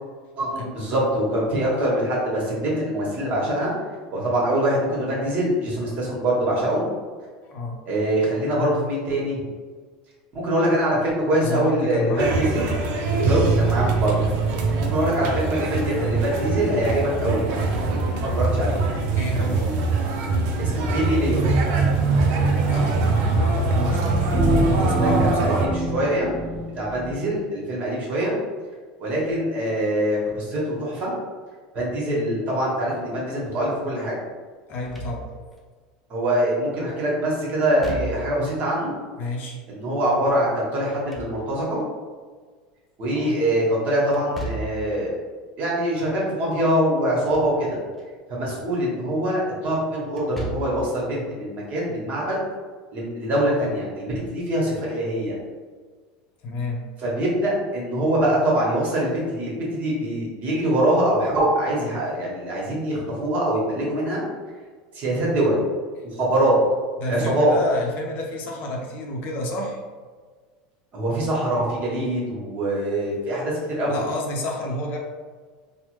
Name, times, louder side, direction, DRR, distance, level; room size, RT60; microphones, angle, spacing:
voice 1, 0.4-3.7 4.1-6.8 7.9-9.4 10.3-12.7 13.2-14.1 14.9-17.5 18.1-18.8 20.6-21.5 25.0-26.3 26.8-28.3 29.0-31.1 31.7-34.2 36.1-38.9 39.7-41.8 43.0-45.1 45.6-47.8 48.3-52.4 52.9-55.4 57.0-64.2 64.9-65.6 66.0-66.6 67.1-67.5 70.9-74.0, right 1 dB, 45° right, -4 dB, 1.3 m, -24 dB
voice 2, 11.4-12.3 15.2-15.3 19.1-19.7 22.7-25.7 34.7-35.3 39.2-39.6 43.1-43.4 56.4-56.9 67.0-69.8 73.9-75.0, left 1 dB, 50° left, 0 dB, 0.7 m, -29 dB
sound 1, 12.2-25.7, right 3 dB, 65° right, 0.5 m, -22 dB
sound 2, 24.3-27.2, right 1 dB, 20° right, 1.0 m, -26 dB
Slam / Thump thud, 34.7-35.6 37.6-38.5 40.8-41.8 44.1-44.9 47.0-47.6 48.0-48.1 50.1-50.9, right 1 dB, ahead, 0.6 m, -35 dB
3.4 x 2.1 x 3.1 m, 1.5 s
supercardioid pair, 115°, 4 cm